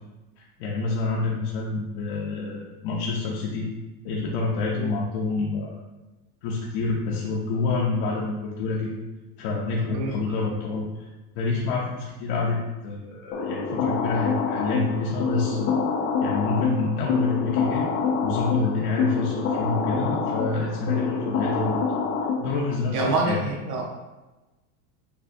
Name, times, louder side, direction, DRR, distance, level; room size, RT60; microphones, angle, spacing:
voice 1, 0.4-3.7 4.0-5.8 6.4-8.9 9.4-11.1 11.4-15.8 16.2-17.9 18.2-22.0 22.4-23.4, left 3 dB, 45° left, -3 dB, 0.6 m, -28 dB
sound 1, 13.3-22.8, left 5 dB, 80° left, 0.8 m, -26 dB
voice 2, 22.9-23.8, right 2 dB, 75° right, -2 dB, 1.1 m, -26 dB
6.6 x 2.6 x 2.6 m, 1.1 s
supercardioid pair, 165°, 46 cm